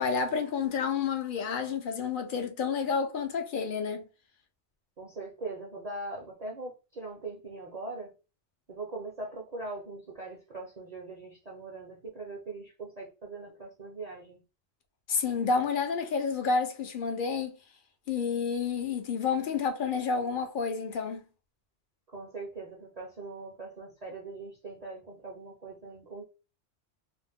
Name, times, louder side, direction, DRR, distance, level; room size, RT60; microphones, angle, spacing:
voice 1, 0.0-4.0 15.1-17.6 18.1-21.2, left 5 dB, 60° left, 0.6 m, -30 dB
voice 2, 5.0-8.1 8.7-14.4 22.1-26.2, right 3 dB, 45° right, 0.5 m, -41 dB
2.5 x 2.1 x 3.5 m
omnidirectional pair, 1.3 m